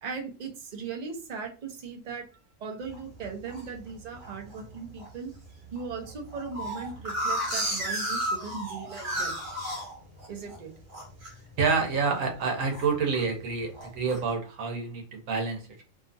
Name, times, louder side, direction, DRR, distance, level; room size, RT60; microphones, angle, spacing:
voice 1, 0.0-2.3 2.6-5.3 5.7-9.3 10.3-10.7, right 5 dB, 45° right, 2 dB, 0.6 m, -38 dB
sound 1, 2.9-3.6 4.2-4.6 5.0-5.1 5.3-5.4 5.8-10.6 10.9-11.3 11.7-12.0 12.3-13.3 13.7-14.2, equal, 65° right, 1.3 m, -33 dB
voice 2, 11.6-15.8, right 5 dB, 90° right, 2 dB, 1.2 m, -28 dB
2.7 x 2.4 x 2.5 m, 0.36 s
omnidirectional pair, 1.3 m